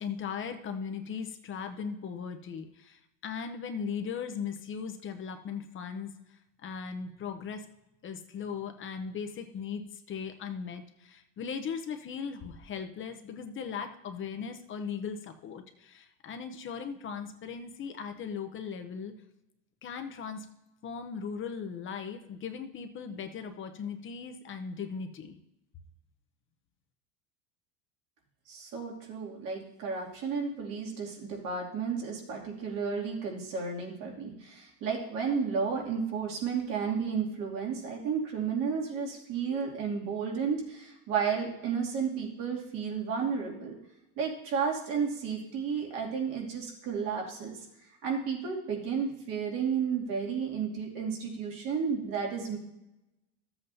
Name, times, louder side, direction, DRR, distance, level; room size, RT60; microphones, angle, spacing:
voice 1, 0.0-6.2 6.6-7.7 8.0-19.1 19.8-20.5 20.8-25.4, left 6 dB, 30° left, 6 dB, 0.8 m, -38 dB
voice 2, 28.5-43.8 44.2-47.7 48.0-52.6, right 6 dB, 55° right, -2 dB, 2.6 m, -32 dB
13.5 x 7.9 x 2.7 m, 0.91 s
supercardioid pair, 125°, 38 cm